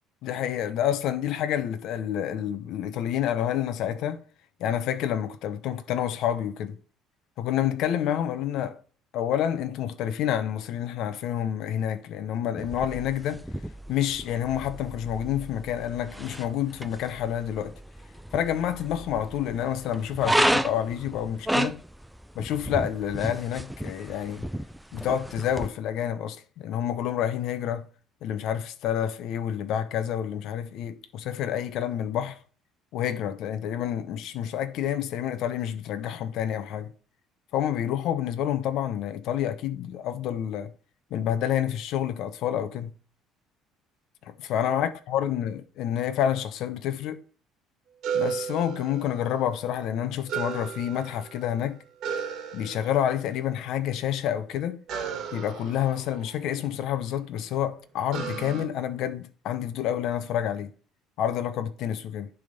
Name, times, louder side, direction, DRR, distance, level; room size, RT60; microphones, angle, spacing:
voice 1, 0.2-4.2 4.6-6.8 7.4-8.8 9.1-13.4 13.9-17.7 18.3-21.8 22.3-24.5 24.9-27.9 28.2-32.4 32.9-36.9 37.5-40.7 41.1-42.9 44.3-47.2 48.1-51.8 52.5-54.8 55.3-60.7 61.2-62.3, left 10 dB, 55° left, 0.7 m, -28 dB
sound 1, 12.6-25.7, right 1 dB, ahead, 0.3 m, -32 dB
sound 2, 48.0-49.5 50.3-51.5 52.0-53.2 54.9-57.0 58.1-58.6, right 7 dB, 50° right, 1.5 m, -34 dB
10.5 x 3.5 x 5.3 m
cardioid pair, 165°, 0 cm